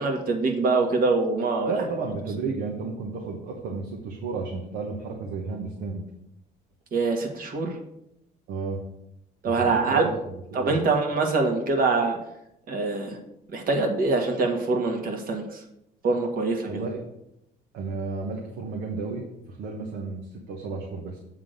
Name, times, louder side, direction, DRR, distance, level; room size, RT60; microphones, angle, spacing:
voice 1, 0.0-1.8 6.9-7.8 9.4-10.1 10.5-12.2 12.7-13.2 13.5-15.6 16.0-16.8, right 3 dB, 60° right, 3 dB, 1.6 m, -24 dB
voice 2, 1.6-6.0 8.5-8.8 9.6-10.8 16.7-17.0 17.7-21.2, right 4 dB, 85° right, 0 dB, 1.2 m, -32 dB
7.7 x 3.7 x 6.5 m, 0.82 s
cardioid pair, 110°, 17 cm